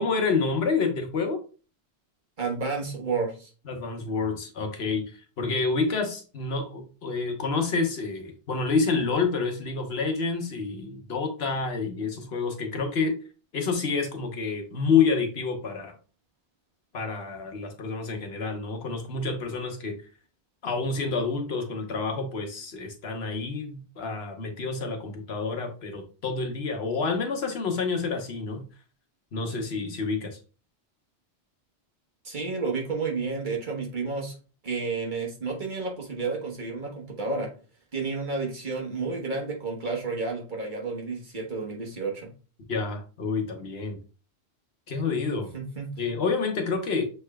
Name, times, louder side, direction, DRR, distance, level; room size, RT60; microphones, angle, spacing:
voice 1, 0.0-1.4 3.7-13.1 13.5-15.9 16.9-20.0 20.6-28.6 29.3-30.4 42.7-44.0 44.9-45.5 46.0-47.0, left 4 dB, 70° left, 3 dB, 1.2 m, -28 dB
voice 2, 2.4-3.5 32.2-34.3 34.6-37.5 37.9-42.3 45.5-45.9, right 4 dB, 45° right, 0 dB, 1.2 m, -31 dB
6.5 x 3.4 x 2.2 m, 0.36 s
omnidirectional pair, 1.1 m